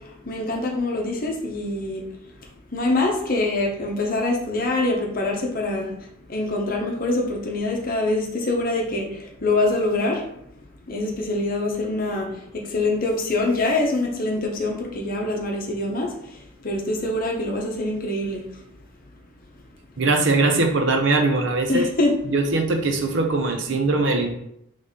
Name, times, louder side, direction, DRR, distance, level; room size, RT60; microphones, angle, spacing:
voice 1, 0.3-2.0 2.7-5.9 6.3-9.1 9.4-10.2 10.9-12.3 12.5-16.1 16.6-18.4 21.7-22.2, left 2 dB, 45° left, 1 dB, 0.8 m, -24 dB
voice 2, 20.0-21.9 22.3-24.3, right 3 dB, 60° right, 4 dB, 0.6 m, -21 dB
4.0 x 3.2 x 3.6 m, 0.77 s
head